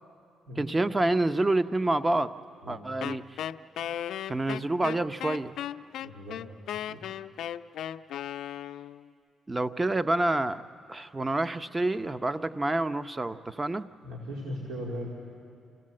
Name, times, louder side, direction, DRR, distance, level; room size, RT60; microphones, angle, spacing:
voice 1, 0.6-2.3 2.7-3.2 4.3-5.5 9.5-10.6 10.9-13.9, right 2 dB, 20° right, 11 dB, 0.7 m, -27 dB
Wind instrument woodwind instrument, 3.0-9.1, left 11 dB, 75° left, 0.4 m, -36 dB
voice 2, 6.0-6.4 6.7-7.0 14.0-15.1, equal, 90° right, -3 dB, 3.1 m, -38 dB
28.0 x 16.5 x 7.6 m, 2.5 s
cardioid pair, 90°, 0 cm